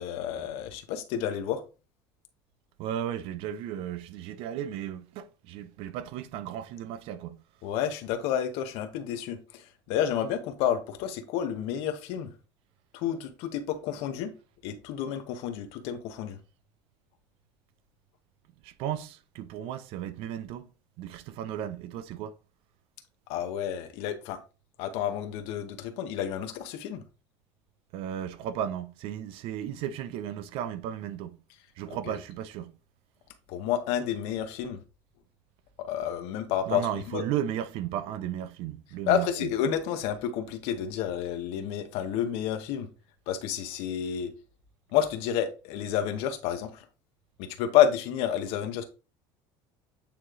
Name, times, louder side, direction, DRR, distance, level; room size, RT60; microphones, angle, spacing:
voice 1, 0.0-1.6 7.6-12.3 12.9-14.3 14.6-16.4 23.3-24.4 24.8-27.0 33.5-34.8 35.8-37.2 39.1-42.9 43.3-44.3 44.9-46.8 47.4-48.8, left 9 dB, 70° left, 1.0 m, -30 dB
voice 2, 2.8-7.4 18.6-20.7 21.0-22.4 27.9-31.4 31.8-32.7 36.7-39.5, right 10 dB, 65° right, 0.6 m, -35 dB
8.7 x 3.1 x 3.7 m
cardioid pair, 130°, 10 cm